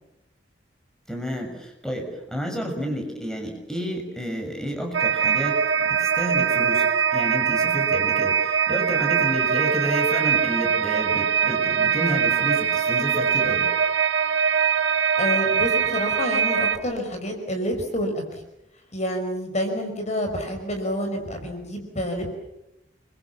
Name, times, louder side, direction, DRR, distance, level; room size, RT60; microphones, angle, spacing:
voice 1, 1.1-13.7, equal, 5° left, 2 dB, 6.5 m, -30 dB
sound 1, 4.9-16.8, right 7 dB, 80° right, 1.5 m, -22 dB
voice 2, 15.2-18.4 18.9-22.3, equal, 40° left, 4 dB, 5.3 m, -28 dB
29.5 x 23.5 x 7.3 m, 0.89 s
head